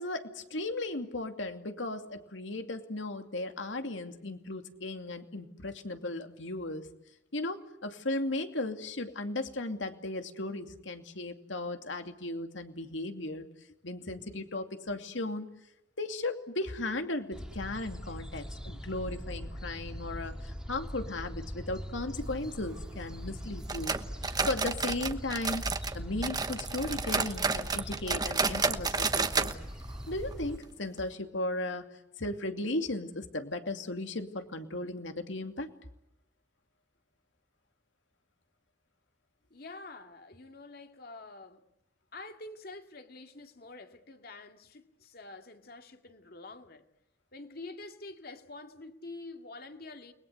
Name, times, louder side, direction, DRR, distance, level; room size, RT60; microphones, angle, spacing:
voice 1, 0.0-6.9 7.3-13.5 13.8-15.5 16.0-23.9 24.4-25.6 25.9-29.6 30.1-31.9 32.2-35.7, left 2 dB, 85° left, 2.6 m, -36 dB
sound 1, 17.3-30.6, equal, 5° right, 2.0 m, -41 dB
sound 2, 23.7-26.0 26.2-29.5 29.8-29.9 30.3-30.4 31.0-31.1, right 4 dB, 20° right, 1.1 m, -31 dB
voice 2, 39.5-41.6 42.1-46.9 47.3-50.1, left 2 dB, 55° left, 2.3 m, -47 dB
29.5 x 22.0 x 8.2 m
head